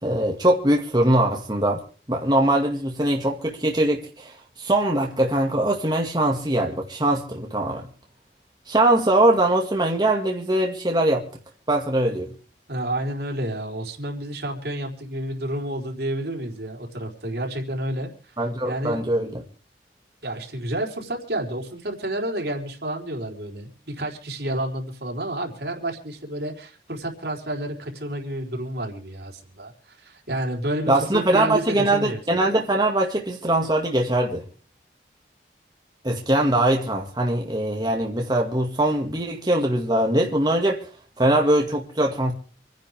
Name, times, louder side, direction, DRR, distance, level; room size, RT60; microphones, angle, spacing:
voice 1, 0.0-1.8 2.1-7.8 8.7-11.2 11.7-12.3 18.4-19.4 30.9-34.4 36.0-40.8 41.2-42.3, right 1 dB, 25° right, 2.1 m, -22 dB
voice 2, 12.7-18.1 18.6-19.0 20.2-32.2, right 1 dB, 65° right, 4.2 m, -30 dB
28.0 x 10.5 x 3.6 m
head